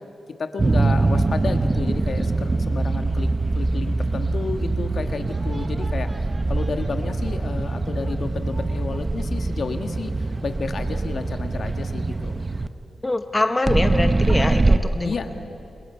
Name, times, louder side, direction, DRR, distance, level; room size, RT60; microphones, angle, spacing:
voice 1, 0.4-3.3 3.5-6.1 6.5-10.1 10.4-12.4 15.0-15.3, left 4 dB, 60° left, 6 dB, 1.6 m, -31 dB
sound 1, 0.6-12.7 13.7-14.8, right 2 dB, 25° right, 0.8 m, -23 dB
voice 2, 13.0-15.1, left 2 dB, 20° left, 7 dB, 1.0 m, -24 dB
28.5 x 28.5 x 5.7 m, 2.8 s
cardioid pair, 95°, 0 cm